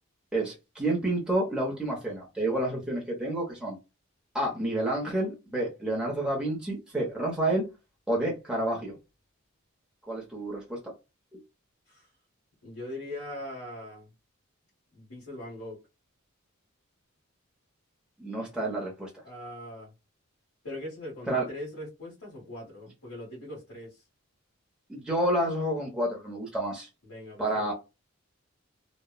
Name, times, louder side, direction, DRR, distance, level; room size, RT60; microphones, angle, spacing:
voice 1, 0.3-3.8 4.3-7.6 8.1-8.9 10.1-10.8 11.3-11.4 18.2-19.1 21.3-21.4 24.9-26.9 27.4-27.7, right 1 dB, 5° right, 0.7 m, -29 dB
voice 2, 12.6-14.1 14.9-15.8 19.2-19.9 20.6-24.0 27.0-27.7, left 1 dB, 85° left, 1.4 m, -41 dB
2.9 x 2.2 x 2.2 m
head